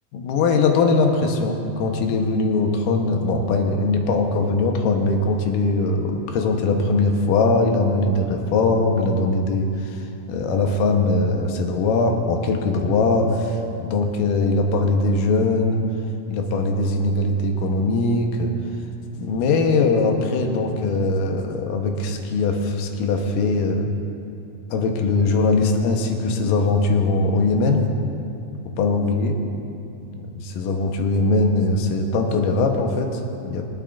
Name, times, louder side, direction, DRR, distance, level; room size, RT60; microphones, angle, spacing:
voice 1, 0.1-15.8 16.3-18.5 19.2-23.9 24.7-27.9 28.8-29.3 30.2-33.7, left 3 dB, 70° left, 3 dB, 2.3 m, -21 dB
24.5 x 8.9 x 2.5 m, 2.7 s
omnidirectional pair, 4.5 m